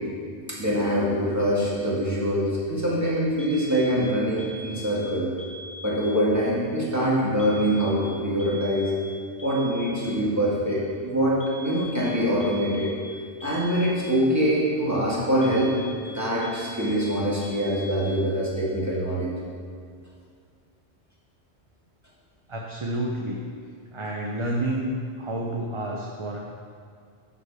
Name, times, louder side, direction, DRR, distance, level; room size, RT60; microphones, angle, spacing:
voice 1, 0.5-5.3 5.8-8.9 9.4-12.9 13.4-15.7 16.1-19.3, equal, 15° right, -7 dB, 2.1 m, -24 dB
sound 1, 3.4-4.0 4.4-5.1 5.4-6.0 7.4-8.1 8.4-9.1 9.4-10.1 11.4-12.1 12.4-13.1 13.4-14.1 15.4-16.1 16.4-17.1 17.4-18.1, left 1 dB, 90° left, 1.3 m, -42 dB
voice 2, 22.5-23.4 23.9-24.9 25.2-26.4, right 1 dB, 30° right, -1 dB, 0.7 m, -29 dB
11.5 x 5.1 x 4.9 m, 2.2 s
omnidirectional pair, 1.1 m